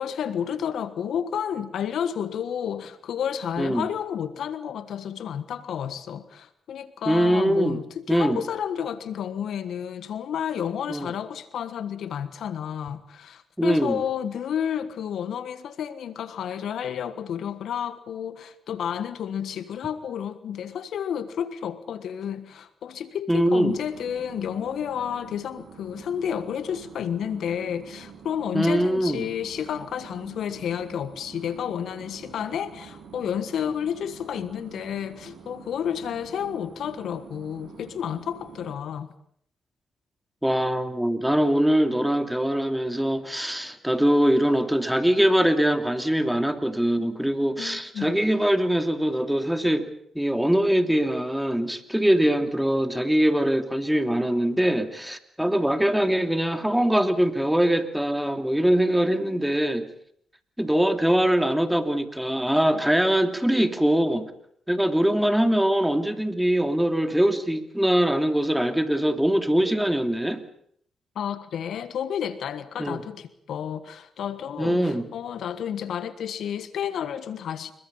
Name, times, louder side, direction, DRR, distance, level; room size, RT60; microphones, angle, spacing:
voice 1, 0.0-39.1 47.6-48.2 71.1-77.7, left 8 dB, 70° left, 13 dB, 1.4 m, -31 dB
voice 2, 3.6-3.9 7.1-7.8 8.1-8.4 10.9-11.1 13.6-14.0 23.3-23.7 28.5-29.2 40.4-49.9 50.1-59.9 60.6-64.3 64.7-70.4 72.8-73.0 74.6-75.1, right 1 dB, 5° right, 8 dB, 2.9 m, -22 dB
sound 1, 23.7-38.7, right 7 dB, 70° right, 6.0 m, -47 dB
28.0 x 22.5 x 5.6 m, 0.67 s
supercardioid pair, 55°, 0 cm